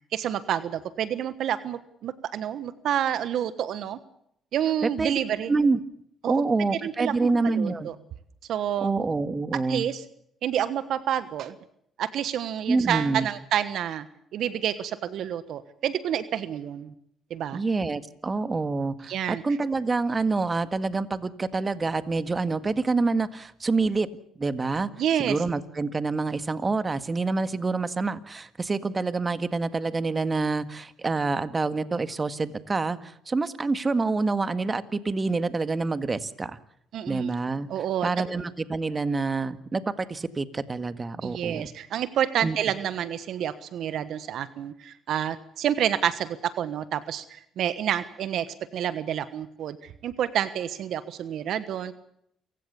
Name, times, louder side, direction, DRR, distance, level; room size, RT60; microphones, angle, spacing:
voice 1, 0.1-4.0 4.5-5.5 6.2-6.4 6.7-7.9 8.5-8.9 9.7-10.0 10.4-11.5 12.0-14.1 14.3-16.9 17.3-17.6 19.1-19.4 25.0-25.4 36.9-37.3 37.7-38.1 41.2-48.5 48.7-51.9, right 10 dB, 70° right, 14 dB, 1.3 m, -29 dB
voice 2, 5.5-5.8 6.3-7.9 8.8-9.8 12.7-13.3 17.5-24.1 24.4-24.9 25.2-36.6 37.1-37.7 38.0-41.7 42.4-42.6, right 3 dB, 30° right, 12 dB, 1.8 m, -27 dB
28.0 x 16.5 x 7.0 m, 0.72 s
supercardioid pair, 60°, 0 cm